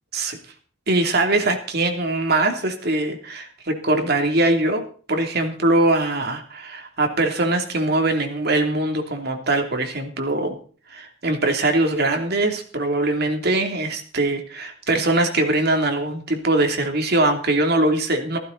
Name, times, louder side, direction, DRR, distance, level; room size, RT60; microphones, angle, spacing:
voice 1, 0.9-4.8 5.1-10.6 10.9-18.4, right 2 dB, 55° right, 4 dB, 3.0 m, -22 dB
16.0 x 15.0 x 4.0 m, 0.41 s
head